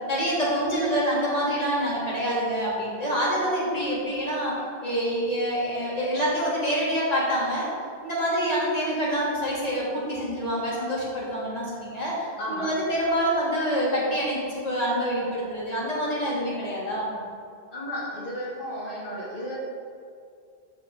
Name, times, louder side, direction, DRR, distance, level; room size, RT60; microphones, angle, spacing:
voice 1, 0.1-4.5 4.8-7.7 8.0-17.1, equal, 40° left, -8 dB, 3.1 m, -26 dB
voice 2, 17.7-19.6, equal, 55° left, -10 dB, 2.7 m, -33 dB
14.0 x 5.4 x 5.0 m, 2.3 s
omnidirectional pair, 1.1 m